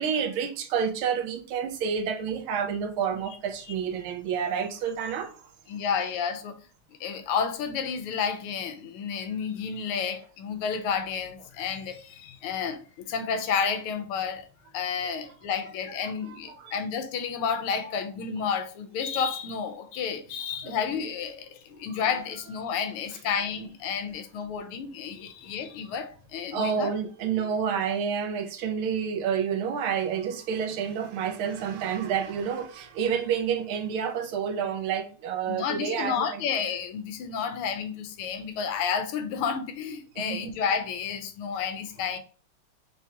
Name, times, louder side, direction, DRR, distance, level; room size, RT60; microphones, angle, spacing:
voice 1, 0.0-5.3 16.3-16.7 17.8-17.9 20.6-20.8 26.5-36.4 40.2-40.4, right 7 dB, 75° right, 1.5 m, -29 dB
voice 2, 5.7-6.6 7.0-14.5 14.7-26.9 35.5-42.2, left 6 dB, 90° left, 1.6 m, -31 dB
4.4 x 3.4 x 2.8 m
omnidirectional pair, 2.4 m